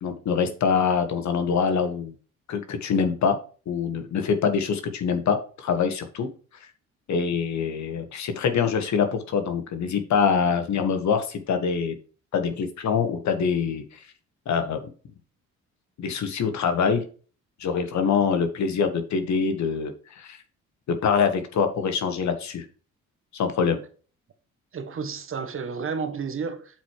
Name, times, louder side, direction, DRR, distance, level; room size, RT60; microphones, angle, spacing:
voice 1, 0.0-2.2 2.5-3.4 3.7-6.3 7.1-12.0 12.3-14.0 14.4-14.8 16.0-17.0 17.6-20.4 20.9-22.6 23.3-23.8, left 6 dB, 65° left, 1.6 m, -24 dB
voice 2, 24.7-26.8, right 5 dB, 45° right, 1.3 m, -31 dB
8.0 x 4.8 x 4.8 m
cardioid pair, 90°, 30 cm